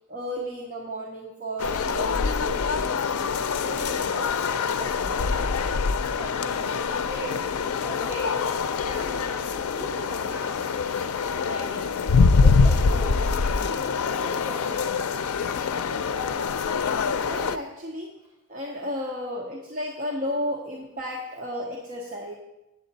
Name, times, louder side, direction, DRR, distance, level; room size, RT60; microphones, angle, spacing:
voice 1, 0.1-2.8 17.2-18.1 18.5-22.4, equal, 35° right, -1 dB, 0.8 m, -33 dB
sound 1, 1.6-17.6, left 5 dB, 85° left, 0.4 m, -24 dB
voice 2, 3.6-5.7 6.2-8.4 8.8-10.7 11.2-13.9 14.2-15.1, right 2 dB, 10° right, -9 dB, 3.5 m, -40 dB
8.7 x 7.9 x 4.0 m, 0.96 s
head